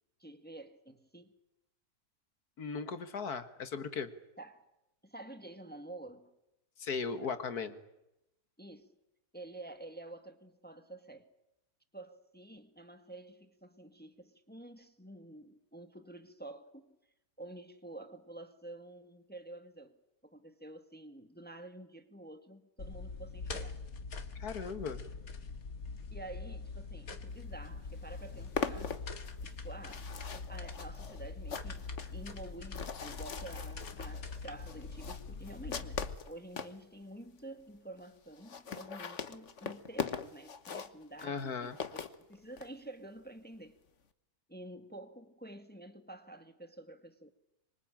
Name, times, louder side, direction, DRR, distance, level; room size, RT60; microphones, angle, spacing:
voice 1, 0.2-1.3 4.4-4.6 5.0-6.3 8.6-8.9 9.3-11.3 11.9-17.0 17.4-19.9 20.2-23.8 26.1-29.0 29.4-43.8 44.5-47.3, right 2 dB, 5° left, 1.6 m, -49 dB
voice 2, 2.6-4.1 6.8-7.8 24.4-25.1 41.2-41.8, left 5 dB, 85° left, 2.2 m, -37 dB
sound 1, 22.8-36.1, left 4 dB, 70° left, 2.2 m, -43 dB
sound 2, 27.6-27.7 27.9-36.8 37.4-37.5 37.7-37.8 38.0-38.1 38.3-42.7, left 6 dB, 55° left, 1.6 m, -41 dB
25.5 x 24.0 x 8.9 m
omnidirectional pair, 1.6 m